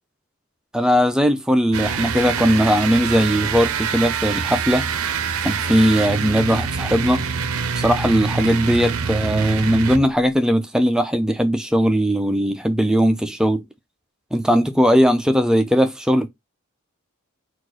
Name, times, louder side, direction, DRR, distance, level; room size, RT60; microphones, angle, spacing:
voice 1, 0.7-4.9 5.4-7.2 7.8-13.6 14.3-16.3, equal, 5° right, 0.4 m, -19 dB
sound 1, 1.7-10.2, right 6 dB, 75° right, 0.6 m, -25 dB
4.3 x 2.4 x 4.4 m
head